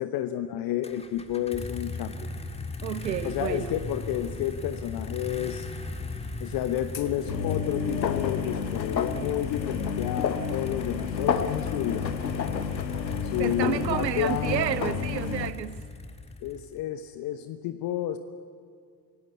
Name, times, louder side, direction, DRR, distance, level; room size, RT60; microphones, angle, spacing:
voice 1, 0.0-2.3 3.2-5.7 6.4-12.2 13.2-14.6 16.4-18.2, left 11 dB, 45° left, 1.1 m, -31 dB
sound 1, 0.8-16.8, left 3 dB, 10° left, 1.7 m, -38 dB
voice 2, 2.8-3.8 9.2-9.3 13.4-15.8, right 11 dB, 80° right, 0.8 m, -30 dB
sound 2, 4.2-4.3 4.6-4.7 4.8-4.9 6.7-15.5, left 7 dB, 85° left, 1.1 m, -30 dB
24.5 x 17.5 x 8.3 m
figure-of-eight pair, 70°, 50 cm